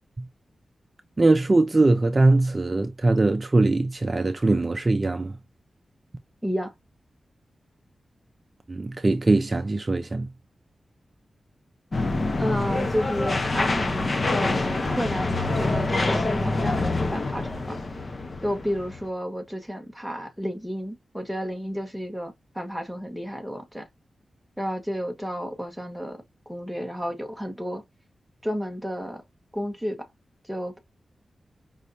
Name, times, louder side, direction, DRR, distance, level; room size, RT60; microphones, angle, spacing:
voice 1, 1.2-5.4 8.7-10.3, right 2 dB, 30° right, 0.6 m, -21 dB
voice 2, 6.4-6.7 12.4-17.8 18.4-23.9 24.6-26.2 26.5-27.8 28.4-29.2 29.5-30.1 30.5-30.8, equal, ahead, 1.2 m, -31 dB
sound 1, 11.9-19.1, left 2 dB, 35° left, 0.9 m, -26 dB
5.3 x 3.2 x 2.6 m
wide cardioid pair, 130°, 0 cm